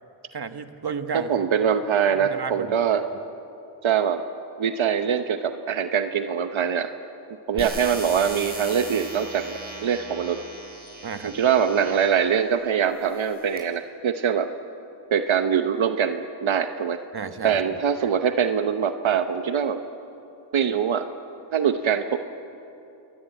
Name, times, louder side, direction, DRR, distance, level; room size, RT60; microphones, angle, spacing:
voice 1, 0.3-1.5 2.1-2.8 7.5-7.7 11.0-11.4 17.1-17.8, right 6 dB, 55° right, 9 dB, 1.5 m, -33 dB
voice 2, 1.1-3.0 3.8-4.2 4.6-6.9 7.5-9.5 9.8-10.4 11.2-14.5 15.1-17.0 17.4-19.8 20.5-21.1 21.5-22.3, right 7 dB, 80° right, 8 dB, 1.0 m, -23 dB
sound 1, 7.6-12.3 13.0-13.6, right 1 dB, 20° right, 7.6 m, -38 dB
27.5 x 21.5 x 9.0 m, 2.8 s
cardioid pair, 55°, 46 cm